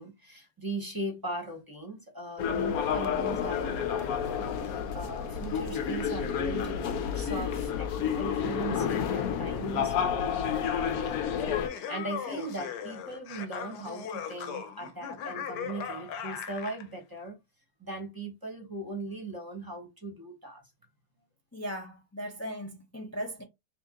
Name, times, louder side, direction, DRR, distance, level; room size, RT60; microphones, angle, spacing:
voice 1, 0.0-11.0 11.9-17.4 17.8-20.6, right 2 dB, 15° right, 1.0 m, -39 dB
sound 1, 2.4-11.7, left 8 dB, 65° left, 1.0 m, -30 dB
Laughter, 11.3-16.8, left 7 dB, 80° left, 1.3 m, -38 dB
voice 2, 21.5-23.4, equal, 20° left, 0.4 m, -38 dB
3.7 x 2.8 x 3.7 m
omnidirectional pair, 1.8 m